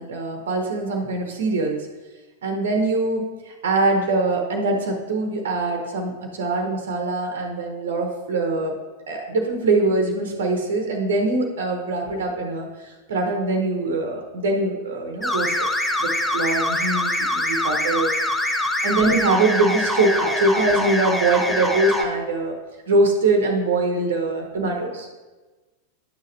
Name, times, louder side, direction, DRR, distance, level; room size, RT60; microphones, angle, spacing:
voice 1, 0.0-1.8 2.4-8.7 9.1-12.7 13.1-15.7 16.0-18.1 18.8-22.5 22.9-25.1, right 2 dB, 60° right, 2 dB, 0.9 m, -23 dB
sound 1, 15.2-22.1, left 1 dB, 5° left, 0.7 m, -24 dB
10.5 x 6.5 x 2.6 m, 1.3 s
figure-of-eight pair, 90°, 0 cm